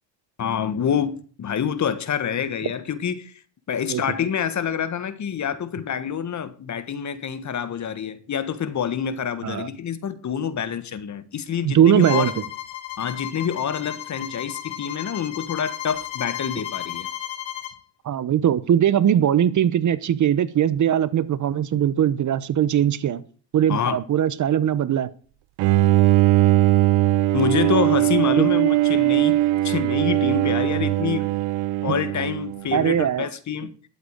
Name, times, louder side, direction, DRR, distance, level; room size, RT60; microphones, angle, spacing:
voice 1, 0.4-3.3 3.7-12.3 13.0-17.1 23.7-24.0 27.3-29.4 29.6-31.3 31.8-33.7, left 8 dB, 35° left, 1.5 m, -27 dB
voice 2, 11.6-12.4 18.0-23.2 23.5-25.1 28.4-28.5 32.7-33.3, right 10 dB, 40° right, 0.9 m, -20 dB
Bowed string instrument, 12.0-17.8, left 12 dB, 65° left, 1.6 m, -33 dB
Bowed string instrument 2, 25.6-32.8, right 16 dB, 70° right, 0.7 m, -20 dB
12.0 x 8.1 x 6.6 m
supercardioid pair, 105°, 47 cm